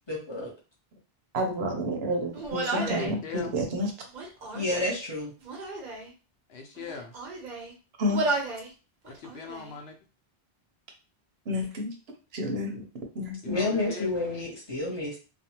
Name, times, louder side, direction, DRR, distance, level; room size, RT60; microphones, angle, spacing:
voice 1, 0.1-0.5 4.5-5.3 13.5-15.2, left 2 dB, 25° left, -4 dB, 0.9 m, -30 dB
voice 2, 1.3-3.9 8.0-8.2 11.5-11.9 12.3-12.9 13.1-13.7, equal, 80° right, 2 dB, 1.0 m, -30 dB
Human voice, 2.3-3.2 4.1-5.0 5.4-6.1 6.8-7.7 8.1-8.7 9.0-9.7, right 3 dB, 50° right, 0.7 m, -33 dB
voice 3, 2.7-3.5 6.5-7.1 9.0-10.0 13.4-14.1, left 5 dB, 80° left, 4 dB, 0.8 m, -39 dB
2.5 x 2.3 x 2.8 m, 0.34 s
omnidirectional pair, 1.1 m